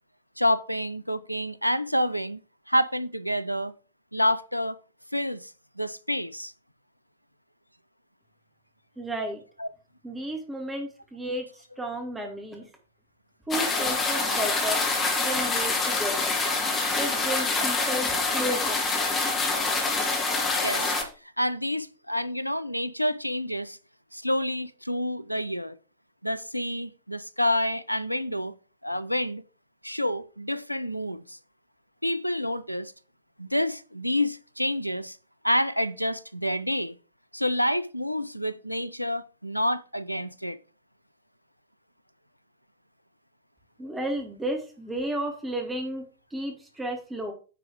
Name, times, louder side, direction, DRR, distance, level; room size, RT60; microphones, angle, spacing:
voice 1, 0.4-2.4 2.7-3.7 4.1-4.8 5.1-6.5 9.6-9.7 20.6-20.9 21.4-23.8 24.1-25.8 26.2-28.5 28.8-29.4 29.8-31.4 32.0-32.9 33.4-35.2 35.4-37.0 37.3-40.6, left 1 dB, 90° left, 0.5 m, -28 dB
voice 2, 9.0-9.4 10.0-12.7 13.5-14.8 15.2-16.3 17.0-18.8 43.8-47.3, right 1 dB, 10° right, 2.6 m, -33 dB
sound 1, 13.5-21.0, left 3 dB, 20° left, 2.8 m, -26 dB
9.5 x 4.7 x 4.9 m
figure-of-eight pair, 90°, 0 cm